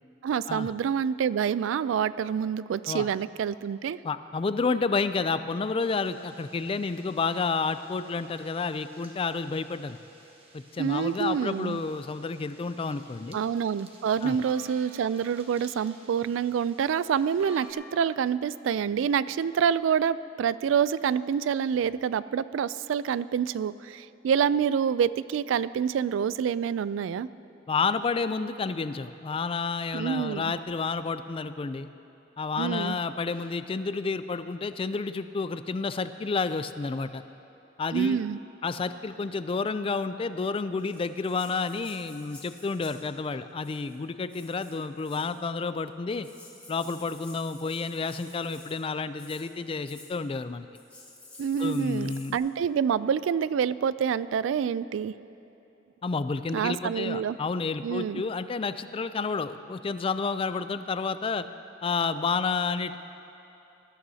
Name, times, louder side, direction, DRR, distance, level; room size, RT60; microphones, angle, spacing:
voice 1, 0.2-4.0 10.8-11.8 13.3-27.3 29.9-30.5 32.6-33.0 37.9-38.4 51.4-55.1 56.5-57.4 57.8-58.2, right 7 dB, 85° right, 18 dB, 0.3 m, -27 dB
voice 2, 4.0-10.0 10.5-13.4 14.2-14.4 27.7-31.9 32.4-37.2 37.8-38.2 38.6-46.3 46.7-50.7 51.6-52.4 56.0-61.4 61.8-63.0, left 4 dB, 30° left, 12 dB, 0.3 m, -30 dB
sound 1, 5.8-17.7, right 1 dB, 30° right, 1.3 m, -54 dB
Rattle (instrument), 40.8-43.1 43.6-43.9 44.3-45.4 45.9-46.0 46.2-48.8 49.1-49.4 49.8-50.1 50.7-52.4, left 2 dB, 10° left, 1.9 m, -51 dB
19.5 x 12.5 x 2.8 m, 3.0 s
head